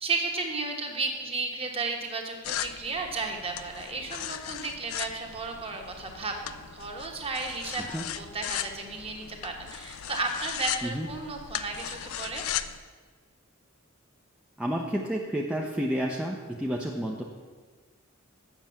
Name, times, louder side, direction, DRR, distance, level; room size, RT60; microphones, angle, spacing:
voice 1, 0.0-7.9 8.2-12.4, right 3 dB, 30° right, 2 dB, 1.3 m, -33 dB
sound 1, 2.4-12.8, left 11 dB, 80° left, 0.4 m, -37 dB
voice 2, 14.6-17.2, equal, 5° right, -2 dB, 0.6 m, -30 dB
7.6 x 6.7 x 7.3 m, 1.5 s
head